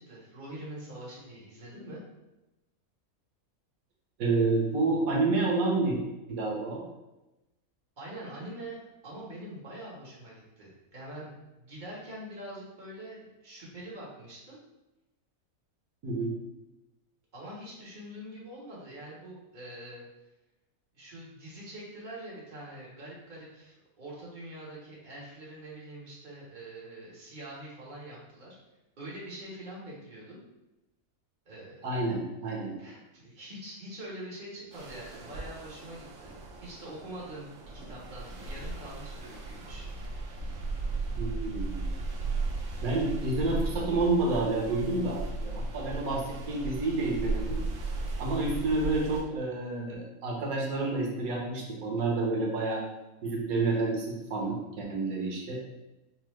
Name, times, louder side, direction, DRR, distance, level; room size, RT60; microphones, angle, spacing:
voice 1, 0.0-2.0 8.0-11.3 11.6-14.6 17.3-20.0 20.9-28.6 29.0-30.4 31.5-31.9 32.8-40.1, right 1 dB, 35° right, -5 dB, 1.2 m, -44 dB
voice 2, 4.2-6.0 6.3-6.8 16.0-16.3 31.8-32.7 41.2-41.8 42.8-47.6 48.2-52.8 53.2-55.6, right 3 dB, 90° right, -1 dB, 1.3 m, -29 dB
sound 1, 34.7-49.2, right 3 dB, 70° right, 1.1 m, -36 dB
5.5 x 2.0 x 3.1 m, 1.0 s
omnidirectional pair, 1.5 m